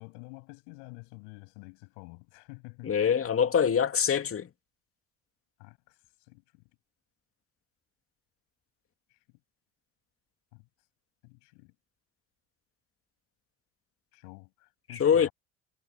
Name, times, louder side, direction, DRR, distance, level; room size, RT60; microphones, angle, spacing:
voice 1, 0.0-2.9 5.6-6.0 6.3-6.6 9.1-9.2 10.5-10.7 11.2-11.7 14.1-15.3, left 37 dB, 85° left, 7.3 m, -49 dB
voice 2, 2.8-4.5 14.9-15.3, left 7 dB, 40° left, 2.6 m, -24 dB
supercardioid pair, 80°, 34 cm